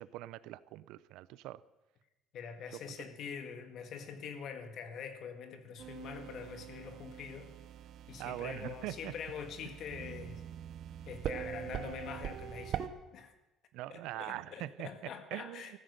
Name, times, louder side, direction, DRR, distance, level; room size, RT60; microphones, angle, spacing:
voice 1, 0.0-1.6 2.7-2.8 8.2-9.1 13.7-14.9 15.3-15.8, right 16 dB, 75° right, 18 dB, 0.6 m, -42 dB
voice 2, 2.3-7.5 8.1-10.4 11.1-13.3 13.9-15.8, left 7 dB, 45° left, 8 dB, 1.7 m, -44 dB
sound 1, 5.8-12.9, right 9 dB, 45° right, 0.9 m, -43 dB
15.0 x 13.0 x 6.6 m, 0.98 s
cardioid pair, 160°, 0 cm